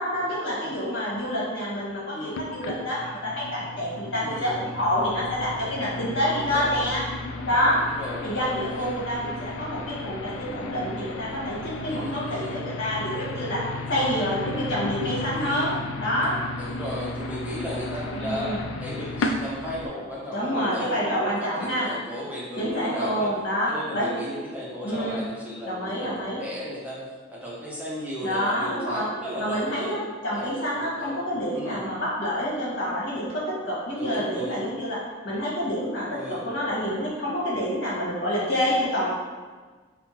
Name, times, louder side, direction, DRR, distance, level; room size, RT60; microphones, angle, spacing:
voice 1, 0.0-7.0 7.4-7.8 8.2-13.6 13.9-16.4 18.1-18.6 20.3-21.9 22.6-24.1 24.8-25.2 25.6-26.4 28.2-29.1 29.4-35.0 35.2-39.1, equal, 65° left, -7 dB, 1.3 m, -27 dB
sound 1, 2.3-19.9, left 2 dB, 90° left, 0.3 m, -34 dB
voice 2, 4.2-4.5 6.3-6.8 7.8-8.9 11.9-12.5 15.3-15.7 16.6-23.3 23.7-27.0 27.3-29.9 30.3-31.2 31.5-31.9 34.0-34.6 36.1-36.4, equal, 10° right, -6 dB, 0.6 m, -35 dB
5.4 x 2.1 x 2.9 m, 1.4 s
head